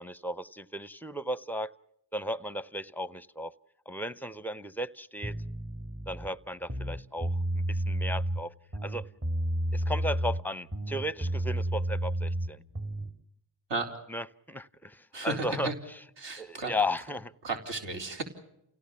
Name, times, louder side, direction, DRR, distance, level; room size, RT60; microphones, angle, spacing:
voice 1, 0.0-1.7 2.1-3.5 3.9-5.4 6.1-8.5 8.8-9.1 9.7-12.6 14.1-15.7 16.4-17.3, left 1 dB, 5° left, 17 dB, 0.8 m, -35 dB
sound 1, 5.2-6.3 6.6-8.4 8.7-10.4 10.7-13.1, right 1 dB, 25° right, 2.5 m, -31 dB
voice 2, 15.1-15.7 16.2-16.7 17.4-18.2, right 3 dB, 60° right, 3 dB, 4.3 m, -33 dB
29.0 x 17.5 x 7.1 m, 0.77 s
cardioid pair, 85°, 49 cm